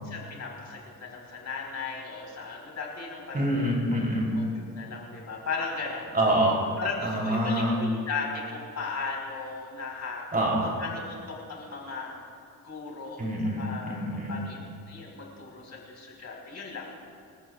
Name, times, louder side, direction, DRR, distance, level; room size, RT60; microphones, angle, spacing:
voice 1, 0.0-3.4 3.9-6.1 6.8-10.2 10.8-11.0 11.3-12.2 12.6-13.2 13.6-14.0 14.3-14.6 14.9-16.9, left 4 dB, 45° left, -2 dB, 4.7 m, -36 dB
voice 2, 3.3-4.3 6.1-6.6 7.0-7.8 10.3-10.7 13.2-14.4, right 1 dB, 25° right, -2 dB, 3.6 m, -26 dB
28.5 x 13.5 x 2.5 m, 2.2 s
cardioid pair, 115°, 36 cm